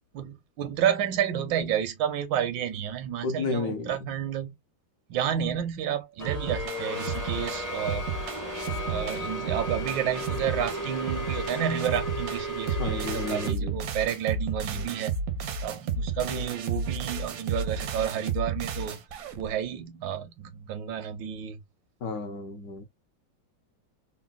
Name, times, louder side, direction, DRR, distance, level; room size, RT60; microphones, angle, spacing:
voice 1, 0.1-4.5 5.1-8.1 8.9-15.1 15.6-19.0 19.4-21.6, right 9 dB, 85° right, 1.4 m, -30 dB
voice 2, 3.2-4.1 12.8-13.7 22.0-22.8, left 3 dB, 65° left, 1.1 m, -32 dB
sound 1, 6.2-13.5, equal, 20° left, 0.4 m, -34 dB
sound 2, 6.3-19.5, right 5 dB, 70° right, 0.8 m, -33 dB
3.8 x 2.1 x 2.2 m
omnidirectional pair, 2.0 m